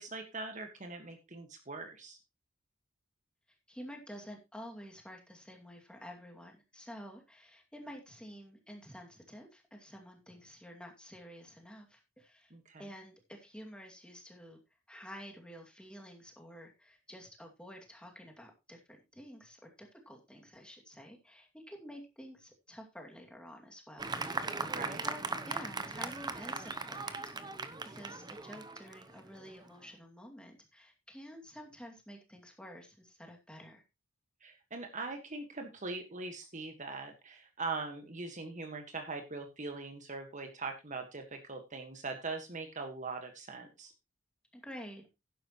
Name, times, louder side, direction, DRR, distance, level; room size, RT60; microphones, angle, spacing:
voice 1, 0.0-2.2 12.5-12.8 24.7-25.0 34.4-43.9, right 3 dB, 40° right, 5 dB, 1.6 m, -41 dB
voice 2, 3.7-12.5 12.8-14.6 14.9-24.2 25.0-27.3 27.9-33.8 44.5-45.1, equal, 5° left, 2 dB, 2.4 m, -50 dB
Fireworks, 24.0-29.7, right 3 dB, 20° right, 0.9 m, -39 dB
11.5 x 10.5 x 3.1 m, 0.25 s
head